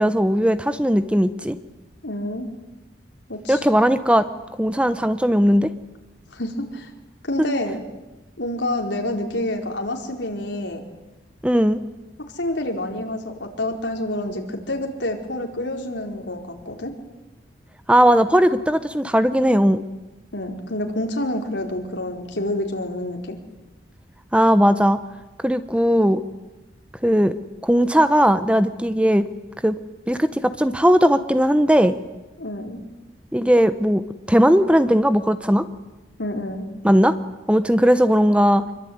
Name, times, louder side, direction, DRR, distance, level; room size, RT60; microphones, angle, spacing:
voice 1, 0.0-1.6 3.5-4.3 4.6-5.7 11.4-11.8 17.9-19.8 24.3-25.0 25.4-26.2 27.0-27.3 27.6-29.3 29.6-29.8 30.1-32.0 33.3-34.0 34.3-35.6 36.8-37.1 37.5-38.6, equal, 5° right, 11 dB, 0.9 m, -17 dB
voice 2, 2.0-2.5 3.3-3.6 6.3-6.9 7.2-7.8 8.4-10.8 12.3-16.9 20.3-23.4 32.4-32.8 36.2-36.7, left 1 dB, 75° left, 3 dB, 4.5 m, -28 dB
26.0 x 23.5 x 9.6 m, 1.1 s
head